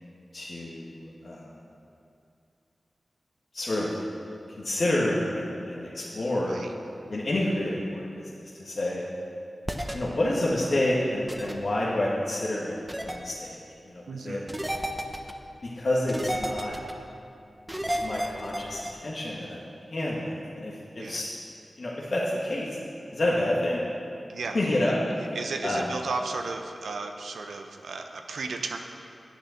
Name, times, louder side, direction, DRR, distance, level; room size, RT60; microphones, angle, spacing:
voice 1, 0.3-1.5 3.5-3.9 4.6-6.6 7.1-9.0 9.9-12.8 13.0-14.4 15.6-16.7 18.0-19.6 19.9-21.3 21.8-22.8 23.1-23.8 24.5-25.3 25.6-25.8, left 1 dB, 65° left, -5 dB, 1.6 m, -29 dB
voice 2, 6.4-6.7 14.1-14.5 21.0-21.2 24.3-24.6 24.9-25.0 25.3-28.8, right 3 dB, 90° right, 4 dB, 0.7 m, -34 dB
sound 1, 9.7-9.9 11.3-11.5 12.9-13.2 14.5-15.3 16.1-16.9 17.7-18.9, equal, 15° right, 1.0 m, -31 dB
10.0 x 8.2 x 6.5 m, 2.6 s
cardioid pair, 40°, 0 cm